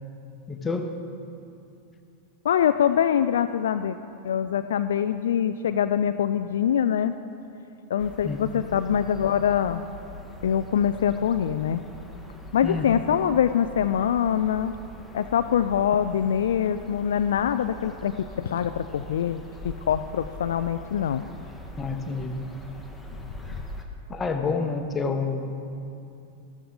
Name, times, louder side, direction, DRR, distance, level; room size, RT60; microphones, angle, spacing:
voice 1, 0.5-0.9 8.2-8.5 12.6-12.9 21.8-22.4 24.1-25.6, left 4 dB, 15° left, 5 dB, 1.1 m, -28 dB
voice 2, 2.4-4.0 4.2-7.1 7.9-9.8 10.4-11.8 12.5-14.7 15.1-21.2, left 9 dB, 60° left, 10 dB, 0.3 m, -24 dB
sound 1, 8.0-23.8, left 1 dB, ahead, 1.2 m, -43 dB
13.5 x 13.5 x 3.8 m, 2.6 s
figure-of-eight pair, 90°, 0 cm